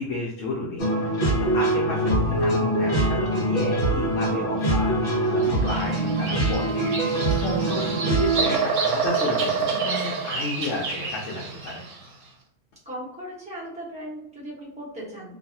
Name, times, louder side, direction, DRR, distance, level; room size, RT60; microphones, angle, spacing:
voice 1, 0.0-11.8, left 2 dB, 80° left, -2 dB, 0.9 m, -32 dB
sound 1, 0.8-8.6, right 1 dB, 50° left, 0.9 m, -23 dB
Bird vocalization bird call bird song, 5.4-12.0, right 5 dB, 85° right, 1.0 m, -28 dB
voice 2, 12.8-15.4, equal, 5° right, -7 dB, 0.9 m, -37 dB
2.6 x 2.3 x 2.7 m, 0.75 s
omnidirectional pair, 1.3 m